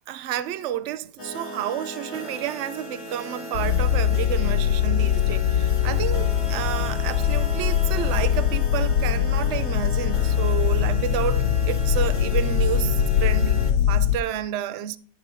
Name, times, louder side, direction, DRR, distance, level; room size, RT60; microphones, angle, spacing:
voice 1, 0.1-15.0, right 11 dB, 70° right, 0.7 m, -30 dB
sound 1, 1.2-13.7, left 1 dB, 25° left, 0.8 m, -36 dB
sound 2, 3.5-14.2, left 9 dB, 65° left, 1.0 m, -22 dB
11.0 x 9.0 x 2.7 m
omnidirectional pair, 1.8 m